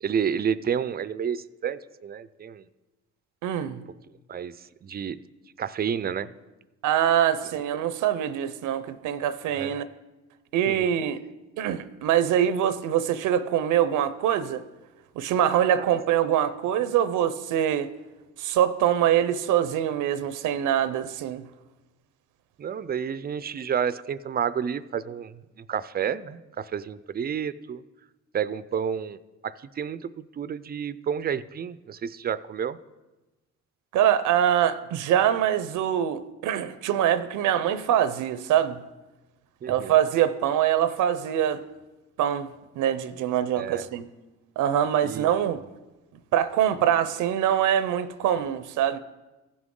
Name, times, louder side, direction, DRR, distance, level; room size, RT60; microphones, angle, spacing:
voice 1, 0.0-2.7 4.3-5.2 5.6-6.3 9.5-9.7 10.7-10.9 15.8-16.0 22.6-27.8 28.3-32.8 39.6-40.0 43.6-43.9 45.0-45.6, right 8 dB, 35° right, 0.4 m, -30 dB
voice 2, 3.4-3.8 6.8-9.9 10.5-11.2 11.6-14.6 15.2-17.9 18.4-21.4 33.9-38.8 39.7-41.6 42.2-42.5 42.8-44.1 44.6-45.6 46.3-49.0, right 10 dB, 80° right, 0.6 m, -24 dB
15.5 x 6.1 x 3.7 m
cardioid pair, 90°, 30 cm